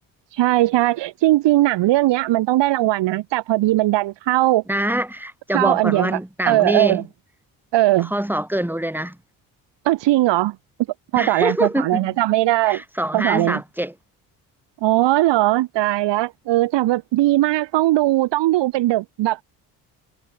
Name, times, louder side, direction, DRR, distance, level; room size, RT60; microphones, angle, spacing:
voice 1, 0.3-4.6 5.5-6.1 6.5-7.0 7.7-8.1 9.9-10.5 11.1-12.8 13.1-13.6 14.8-19.4, right 16 dB, 60° right, 3.7 m, -19 dB
voice 2, 4.7-7.1 8.0-9.2 11.2-12.1 12.7-13.9, right 1 dB, 5° right, 4.5 m, -24 dB
figure-of-eight pair, 45°, 49 cm